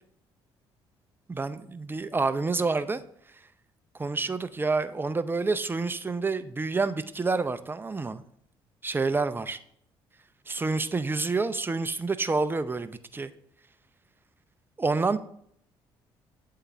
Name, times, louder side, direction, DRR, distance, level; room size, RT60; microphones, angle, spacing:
voice 1, 1.3-3.0 4.0-8.2 8.8-9.6 10.5-13.3 14.8-15.2, right 3 dB, 20° right, 11 dB, 0.5 m, -28 dB
8.2 x 3.8 x 5.4 m, 0.68 s
hypercardioid pair, 55°, 11 cm